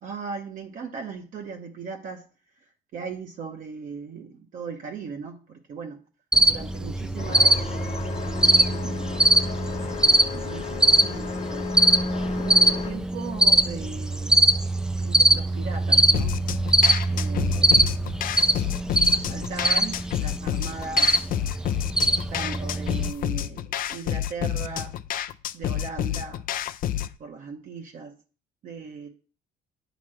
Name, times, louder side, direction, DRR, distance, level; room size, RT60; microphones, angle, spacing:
voice 1, 0.0-2.2 2.9-6.0 6.5-7.7 8.7-9.2 10.0-11.7 12.4-14.5 15.0-16.4 17.1-17.8 19.1-21.1 22.3-25.0 25.5-26.4 27.2-28.1 28.6-29.1, right 5 dB, 50° right, 2 dB, 0.9 m, -38 dB
Cricket, 6.3-23.1, right 1 dB, 5° right, 0.4 m, -22 dB
sound 1, 7.2-12.9, left 6 dB, 40° left, 1.1 m, -35 dB
sound 2, 16.1-27.1, left 11 dB, 55° left, 0.4 m, -29 dB
8.5 x 3.1 x 6.1 m, 0.38 s
cardioid pair, 110°, 17 cm